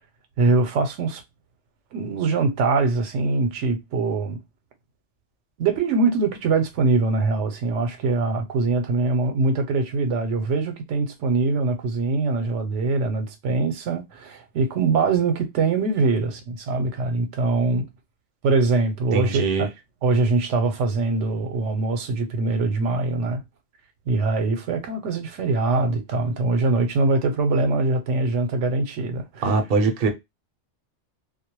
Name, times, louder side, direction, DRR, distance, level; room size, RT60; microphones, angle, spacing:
voice 1, 0.4-1.2 1.9-4.4 5.6-17.9 18.4-19.7 20.0-23.4 24.1-29.5, right 3 dB, 85° right, 0.9 m, -23 dB
voice 2, 19.1-19.7 29.4-30.1, right 3 dB, 55° right, 0.7 m, -22 dB
2.2 x 2.0 x 2.8 m
omnidirectional pair, 1.2 m